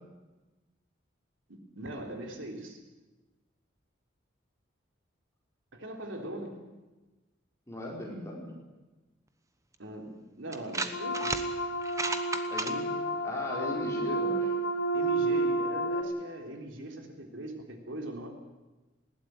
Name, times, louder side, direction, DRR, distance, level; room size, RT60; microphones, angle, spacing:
voice 1, 1.5-2.8 5.7-6.5 9.8-11.4 14.9-18.3, right 1 dB, 85° right, 3 dB, 3.6 m, -41 dB
voice 2, 7.7-8.5 12.5-13.0 13.2-14.5, left 1 dB, 15° left, -2 dB, 4.7 m, -37 dB
sound 1, 9.7-9.8 10.5-11.4 11.8-12.7, right 3 dB, 15° right, 1.1 m, -33 dB
sound 2, 10.9-16.0, right 2 dB, 90° left, 4.5 m, -30 dB
20.0 x 16.5 x 9.5 m, 1.2 s
head